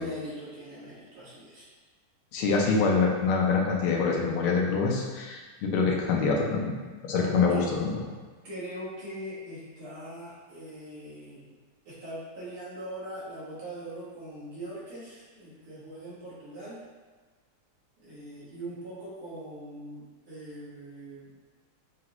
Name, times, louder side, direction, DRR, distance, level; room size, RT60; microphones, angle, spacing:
voice 1, 0.0-1.6 7.2-7.7 8.4-11.6 11.9-16.8 18.0-21.4, right 1 dB, 75° right, -10 dB, 2.4 m, -41 dB
voice 2, 2.3-6.7 7.0-7.9, left 4 dB, 85° left, -1 dB, 1.6 m, -25 dB
6.0 x 2.5 x 2.9 m, 1.4 s
omnidirectional pair, 2.3 m